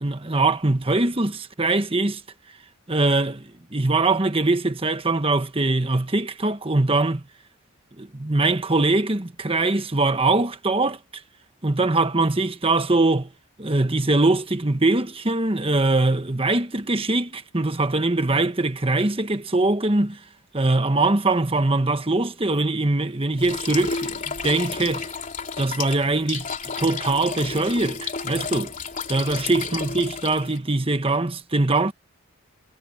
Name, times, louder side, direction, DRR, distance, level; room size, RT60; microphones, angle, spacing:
voice 1, 0.0-2.2 2.9-3.4 3.7-7.2 8.0-11.0 11.6-13.3 13.6-20.2 20.5-25.1 25.6-26.4 26.8-28.7 29.1-31.9, right 2 dB, 25° right, 1.3 m, -22 dB
sound 1, 23.4-30.6, left 5 dB, 35° left, 3.3 m, -32 dB
head